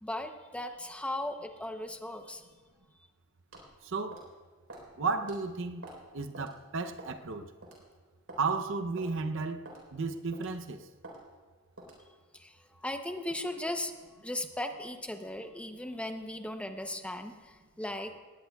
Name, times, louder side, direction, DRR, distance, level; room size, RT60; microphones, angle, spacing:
voice 1, 0.0-2.5 12.3-13.9 14.2-18.2, left 1 dB, 5° left, 0.7 m, -37 dB
sound 1, 3.5-3.7 4.1-4.3 4.7-4.9 5.2-5.4 5.8-6.1 6.3-6.5 7.0-7.2 7.6-7.8 8.3-8.5 9.0-9.1 9.7-9.8 10.3-10.6 11.0-11.2 11.8-12.0, right 1 dB, 80° right, 4.0 m, -47 dB
voice 2, 3.8-4.2 5.0-5.8 6.1-7.5 8.4-10.9, right 4 dB, 65° right, 0.7 m, -33 dB
19.5 x 18.5 x 2.3 m
head